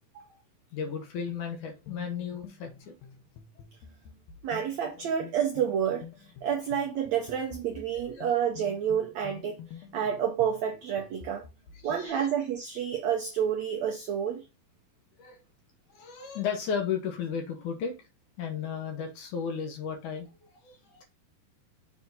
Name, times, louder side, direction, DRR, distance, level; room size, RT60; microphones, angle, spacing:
voice 1, 0.7-2.9 8.2-8.3 11.8-12.3 15.2-15.4 15.9-17.9 18.4-21.0, left 7 dB, 70° left, 2.1 m, -34 dB
sound 1, 0.8-12.1, left 7 dB, 85° left, 1.5 m, -49 dB
voice 2, 4.4-6.1 6.4-9.6 9.9-11.4 11.8-14.4, right 8 dB, 90° right, 1.5 m, -29 dB
7.0 x 3.6 x 3.9 m
omnidirectional pair, 4.4 m